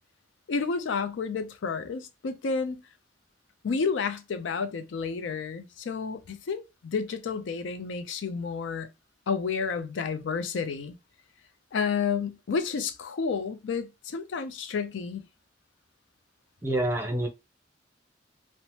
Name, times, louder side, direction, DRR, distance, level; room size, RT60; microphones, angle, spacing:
voice 1, 0.5-2.8 3.6-8.9 9.3-11.0 11.7-15.2, left 5 dB, 85° left, 0.4 m, -30 dB
voice 2, 16.6-17.3, right 1 dB, 10° right, 0.6 m, -27 dB
2.8 x 2.0 x 3.0 m
head